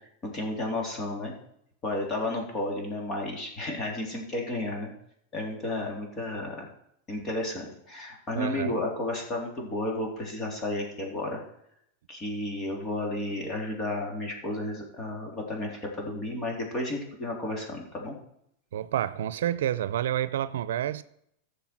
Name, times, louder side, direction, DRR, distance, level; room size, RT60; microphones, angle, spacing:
voice 1, 0.2-1.3 1.8-4.9 5.3-6.7 7.1-11.4 12.1-18.1, left 1 dB, 25° left, 3.4 m, -32 dB
voice 2, 8.4-8.8 18.7-21.0, right 11 dB, 80° right, 0.6 m, -29 dB
15.0 x 6.8 x 5.9 m
supercardioid pair, 150°, 0 cm